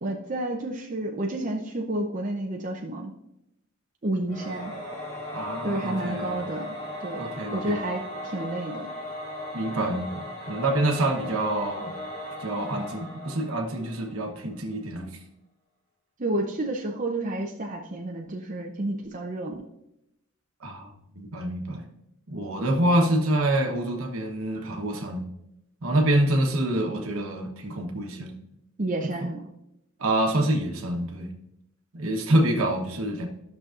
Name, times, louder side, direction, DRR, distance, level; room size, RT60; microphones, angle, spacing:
voice 1, 0.0-3.1 4.0-4.7 5.6-8.9 16.2-19.6 24.5-24.7 28.8-29.4, right 1 dB, 35° right, 1 dB, 0.6 m, -30 dB
Singing / Musical instrument, 4.3-14.3, left 1 dB, 30° left, 1.9 m, -37 dB
voice 2, 5.3-6.4 7.2-7.8 9.5-11.9 12.4-15.2 20.6-20.9 21.2-21.8 22.3-25.2 25.8-28.3 29.2-29.3 30.0-31.3 31.9-33.3, right 1 dB, 70° right, 3 dB, 1.1 m, -26 dB
13.0 x 6.2 x 2.5 m, 0.84 s
head